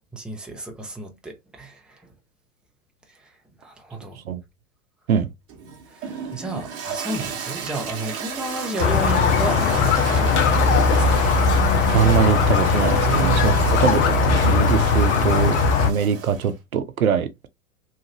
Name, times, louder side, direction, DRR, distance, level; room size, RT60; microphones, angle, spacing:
voice 1, 0.1-2.1 3.1-3.3 3.6-4.2 5.9-11.2 13.0-13.6, right 3 dB, ahead, 0.7 m, -32 dB
Toilet flush, 5.5-16.5, right 6 dB, 35° right, 1.2 m, -33 dB
Squeak, 8.8-15.9, left 5 dB, 55° left, 0.9 m, -19 dB
voice 2, 11.9-15.6 15.8-17.3, right 8 dB, 80° right, 0.7 m, -22 dB
3.1 x 2.5 x 2.8 m
figure-of-eight pair, 95°, 42 cm